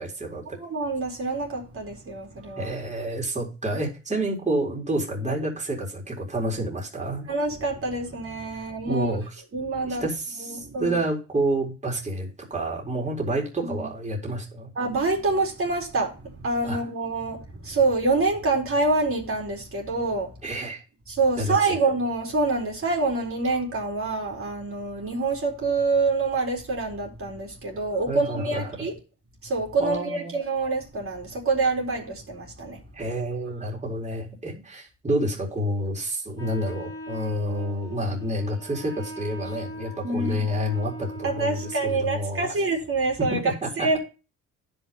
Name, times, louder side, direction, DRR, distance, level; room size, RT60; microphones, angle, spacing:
voice 1, 0.0-0.6 2.6-7.3 8.5-8.6 8.9-9.4 9.9-14.7 16.6-16.8 20.4-20.8 21.4-21.5 28.1-28.9 29.8-30.3 32.9-42.5 43.2-44.0, right 1 dB, 25° right, -2 dB, 4.3 m, -29 dB
voice 2, 0.6-2.7 4.1-4.3 7.3-9.1 9.5-10.0 10.4-11.0 13.6-13.9 14.8-17.4 17.6-20.3 21.1-28.9 29.4-32.8 40.0-40.5 41.2-43.4 43.8-44.0, right 3 dB, 45° right, -1 dB, 4.4 m, -26 dB
Wind instrument woodwind instrument, 36.4-42.2, equal, 15° left, 2.8 m, -40 dB
10.5 x 5.8 x 5.7 m, 0.31 s
cardioid pair, 90°, 30 cm